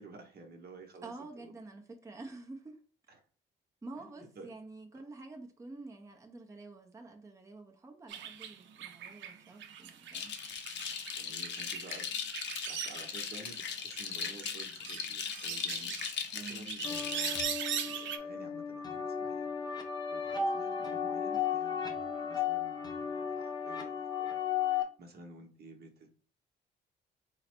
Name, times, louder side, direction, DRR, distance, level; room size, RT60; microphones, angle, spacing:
voice 1, 0.0-1.5 3.1-3.2 4.0-4.5 4.9-5.0 11.2-12.1 12.7-15.9 16.3-19.5 20.1-24.4 25.0-26.1, right 2 dB, 55° right, 0.9 m, -52 dB
voice 2, 1.0-2.8 3.8-10.4 16.3-16.7, right 2 dB, 15° right, 0.6 m, -48 dB
sound 1, 8.1-13.6 13.9-18.2, right 8 dB, 70° right, 0.5 m, -41 dB
sound 2, 10.1-17.4, left 7 dB, 65° left, 0.7 m, -39 dB
sound 3, 16.8-24.8, left 7 dB, 20° left, 0.7 m, -35 dB
3.8 x 2.1 x 4.3 m
cardioid pair, 90°, 20 cm